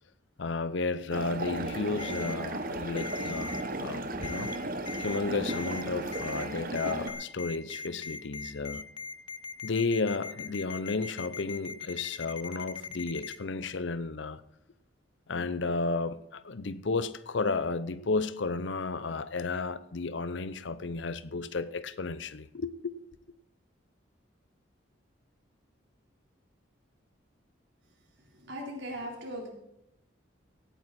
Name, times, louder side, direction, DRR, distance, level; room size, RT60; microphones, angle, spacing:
voice 1, 0.4-4.6 5.0-8.9 9.6-14.4 15.3-23.0, left 3 dB, 70° left, 0.7 m, -33 dB
sound 1, 1.1-7.1, right 2 dB, 45° right, 1.1 m, -35 dB
Ringtone, 2.0-2.3 3.0-3.6 4.2-4.6 4.9-5.2 5.5-5.8 6.1-6.4 6.7-13.4, left 4 dB, 25° left, 0.5 m, -39 dB
voice 2, 28.4-29.5, equal, 75° right, 4.0 m, -38 dB
17.0 x 9.2 x 4.2 m
head